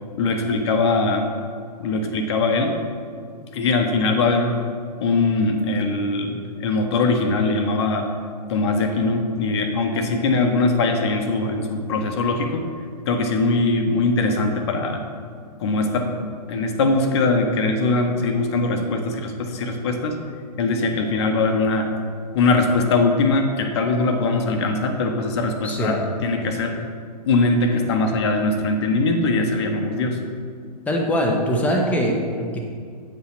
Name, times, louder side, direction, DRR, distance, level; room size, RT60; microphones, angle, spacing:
voice 1, 0.2-1.3 1.8-2.7 3.5-4.6 5.0-8.1 8.5-12.6 13.1-15.0 15.6-16.2 16.5-20.2 20.6-21.9 22.3-26.8 27.3-30.2, left 3 dB, 40° left, 4 dB, 1.1 m, -21 dB
voice 2, 25.6-25.9 30.9-32.6, equal, 5° left, 0 dB, 1.1 m, -22 dB
8.9 x 5.7 x 5.9 m, 2.1 s
figure-of-eight pair, 120°, 21 cm